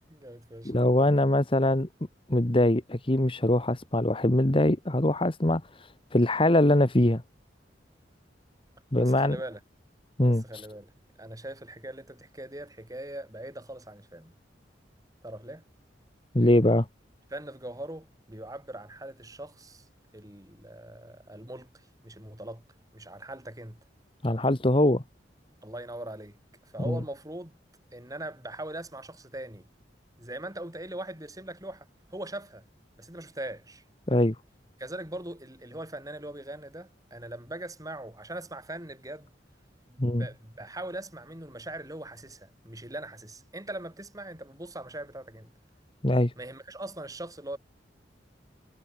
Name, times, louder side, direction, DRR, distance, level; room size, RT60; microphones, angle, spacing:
voice 1, 0.1-1.1 9.0-9.6 10.2-10.9 11.2-14.3 15.2-15.6 17.3-19.9 20.1-22.6 22.9-23.8 25.6-27.6 27.9-29.7 30.2-32.7 33.0-33.8 34.8-39.3 39.9-45.5 46.4-47.6, right 1 dB, 20° right, 7.0 m, -41 dB
voice 2, 0.6-1.9 2.3-5.6 6.1-7.2 8.9-9.4 10.2-10.4 16.3-16.9 24.2-25.0 26.9-27.0 34.1-34.3 40.0-40.3 46.0-46.3, left 1 dB, 30° left, 1.3 m, -22 dB
head